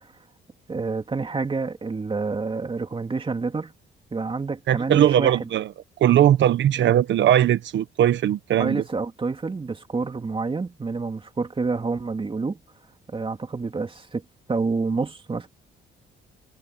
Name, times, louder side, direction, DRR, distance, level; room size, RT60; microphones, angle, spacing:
voice 1, 0.7-3.7 4.1-5.5 6.8-6.9 8.6-12.6 13.1-14.2 14.5-15.5, right 4 dB, 25° right, 2.7 m, -28 dB
voice 2, 4.7-5.7 6.0-8.8, right 11 dB, 70° right, 1.1 m, -19 dB
cardioid pair, 90°, 20 cm